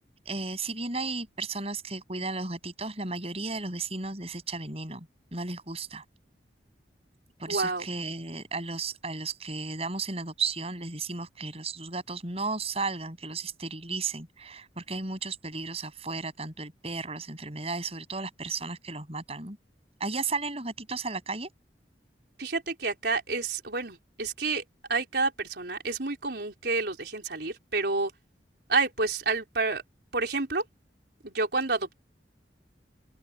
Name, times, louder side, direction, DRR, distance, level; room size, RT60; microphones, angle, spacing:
voice 1, 0.3-5.1 5.3-6.0 7.4-19.6 20.0-21.5, right 3 dB, 35° right, 7.6 m, -34 dB
voice 2, 7.5-7.9 22.4-24.6 24.9-28.1 28.7-29.8 30.1-30.6 31.2-32.0, right 3 dB, 65° right, 4.4 m, -29 dB
open air
head